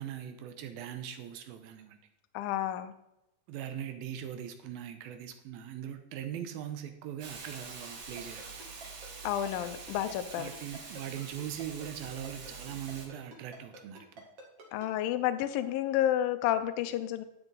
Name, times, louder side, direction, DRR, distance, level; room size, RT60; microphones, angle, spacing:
voice 1, 0.0-2.0 3.5-8.5 10.4-14.2, right 10 dB, 80° right, 9 dB, 2.4 m, -41 dB
voice 2, 2.3-2.9 9.2-10.5 14.7-17.2, left 12 dB, 75° left, 10 dB, 2.2 m, -30 dB
Hiss, 7.2-13.1, right 4 dB, 60° right, 3.1 m, -46 dB
Ringtone, 8.2-14.9, right 2 dB, 45° right, 2.4 m, -49 dB
11.5 x 8.0 x 3.9 m, 0.89 s
omnidirectional pair, 4.5 m